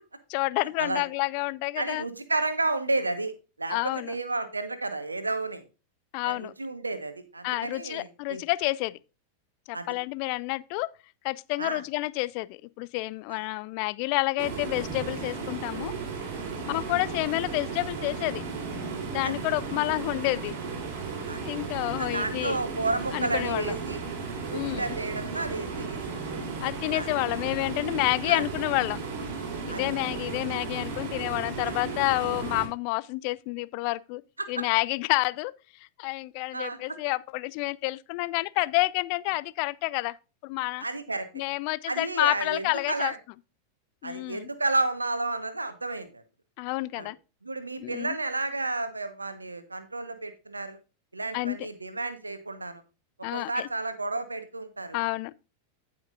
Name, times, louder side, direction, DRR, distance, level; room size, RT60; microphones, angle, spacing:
voice 1, 0.3-2.0 3.7-4.1 6.1-6.5 7.4-9.0 9.7-10.9 11.2-15.9 16.7-18.5 19.1-20.5 21.4-22.6 23.1-23.7 24.5-24.9 26.6-29.0 29.7-34.2 34.5-35.5 36.0-40.2 40.4-40.8 41.3-43.1 44.0-44.5 46.6-47.2 47.8-48.2 51.3-51.7 53.2-53.7 54.9-55.4, left 22 dB, 45° left, 0.4 m, -29 dB
voice 2, 1.8-3.3 3.6-5.6 6.2-8.4 9.7-9.9 11.6-11.8 13.3-13.4 19.2-19.3 21.3-21.4 22.0-24.0 24.5-26.2 26.9-27.1 28.3-28.4 29.7-29.9 34.4-34.6 36.5-37.0 40.8-41.3 41.9-43.2 44.0-46.2 46.9-47.1 47.4-50.8 51.1-52.8 53.3-55.0, right 2 dB, 80° right, 1.3 m, -31 dB
sound 1, 14.4-32.7, right 4 dB, 45° right, 3.5 m, -35 dB
15.5 x 5.8 x 2.5 m
figure-of-eight pair, 90°, 0 cm